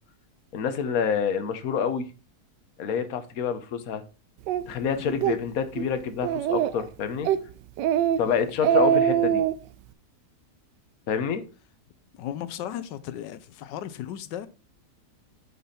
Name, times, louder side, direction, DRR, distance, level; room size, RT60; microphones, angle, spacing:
voice 1, 0.5-2.0 2.8-4.0 4.7-7.3 8.2-9.4 11.1-11.4, left 7 dB, 60° left, 1.4 m, -27 dB
Speech, 4.5-4.6 5.1-5.4 5.8-5.9 6.2-6.8 7.2-7.4 7.8-8.2 8.5-9.5, right 10 dB, 90° right, 1.3 m, -23 dB
voice 2, 5.0-5.3 8.2-8.5 12.1-14.5, left 11 dB, 90° left, 1.3 m, -36 dB
9.2 x 5.4 x 4.2 m
omnidirectional pair, 1.8 m